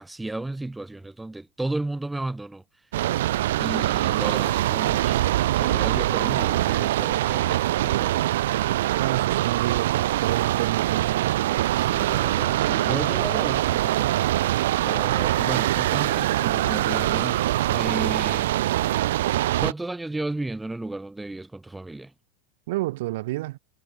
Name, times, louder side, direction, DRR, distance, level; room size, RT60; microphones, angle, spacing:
voice 1, 0.0-2.6 3.6-8.4 11.8-14.1 14.8-18.5 19.6-22.1, right 2 dB, 5° right, 1.2 m, -34 dB
sound 1, 2.9-19.7, right 14 dB, 80° right, 0.3 m, -23 dB
voice 2, 9.0-11.4 13.1-13.3 22.7-23.6, right 18 dB, 60° right, 1.5 m, -30 dB
supercardioid pair, 160°, 0 cm